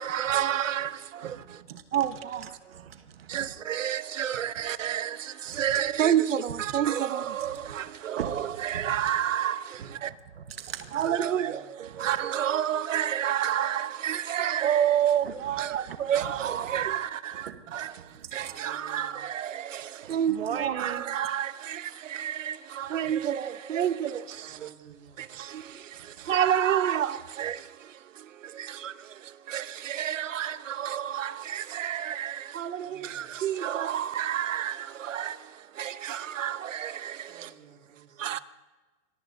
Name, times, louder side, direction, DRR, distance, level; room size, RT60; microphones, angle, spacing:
voice 1, 0.0-1.6 1.9-2.8 3.3-10.1 10.9-24.7 25.2-37.5 38.2-38.4, right 10 dB, 65° right, 0.9 m, -30 dB
voice 2, 1.2-2.0 2.7-3.5 5.5-5.6 6.7-6.8 7.7-7.8 8.2-8.4 8.7-9.0 9.8-11.1 11.9-12.1 15.2-16.3 16.7-16.9 17.4-17.9 18.2-18.5 20.0-21.0, right 8 dB, 45° right, 1.2 m, -40 dB
voice 3, 10.9-11.7 18.5-19.3 24.4-25.3 32.8-33.3 37.3-38.4, right 6 dB, 85° right, 2.9 m, -52 dB
25.5 x 21.0 x 2.7 m
hypercardioid pair, 175°, 40 cm